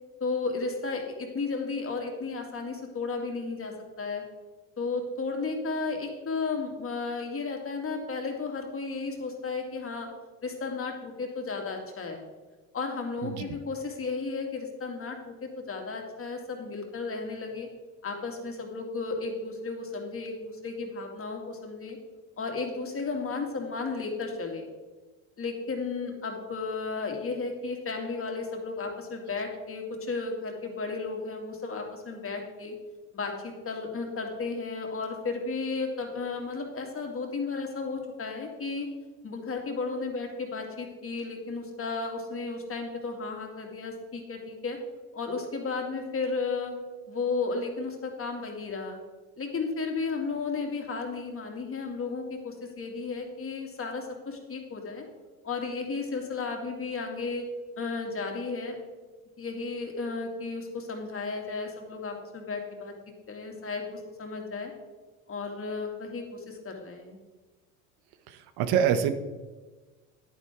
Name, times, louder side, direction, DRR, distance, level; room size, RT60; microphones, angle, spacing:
voice 1, 0.2-4.2 4.8-10.1 10.4-12.2 12.7-17.7 18.0-22.0 22.4-24.7 25.4-32.7 33.1-38.9 39.2-44.8 45.1-46.7 47.1-49.0 49.4-55.0 55.4-57.5 57.8-58.8 59.4-62.9 63.3-64.7 65.3-67.2, left 4 dB, 30° left, 2 dB, 2.4 m, -34 dB
voice 2, 68.3-69.1, right 8 dB, 65° right, 10 dB, 1.1 m, -26 dB
10.5 x 9.5 x 3.7 m, 1.3 s
supercardioid pair, 80°, 41 cm